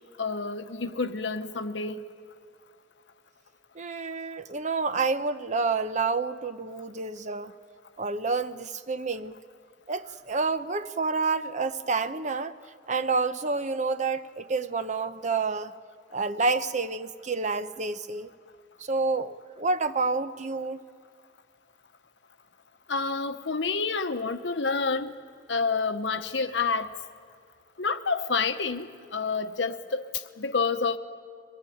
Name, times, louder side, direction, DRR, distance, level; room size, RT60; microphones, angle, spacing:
voice 1, 0.2-2.0 22.9-25.1 25.5-26.9 27.8-31.0, left 4 dB, 75° left, 9 dB, 1.0 m, -28 dB
voice 2, 3.7-7.5 8.0-9.4 9.9-12.5 12.9-15.7 16.1-18.3 18.8-20.8, right 4 dB, 40° right, 11 dB, 0.8 m, -29 dB
24.0 x 18.5 x 9.3 m, 2.3 s
head